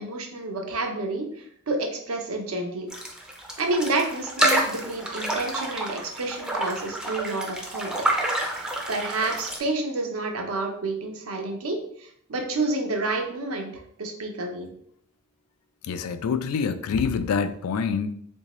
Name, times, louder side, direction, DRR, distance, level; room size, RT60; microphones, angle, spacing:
voice 1, 0.0-2.9 3.6-7.9 8.9-14.7, right 2 dB, 75° right, 3 dB, 0.7 m, -29 dB
sound 1, 2.9-9.6, right 1 dB, 5° right, 0.4 m, -28 dB
voice 2, 15.8-18.1, left 6 dB, 85° left, 11 dB, 0.3 m, -26 dB
3.6 x 2.7 x 3.0 m, 0.65 s
head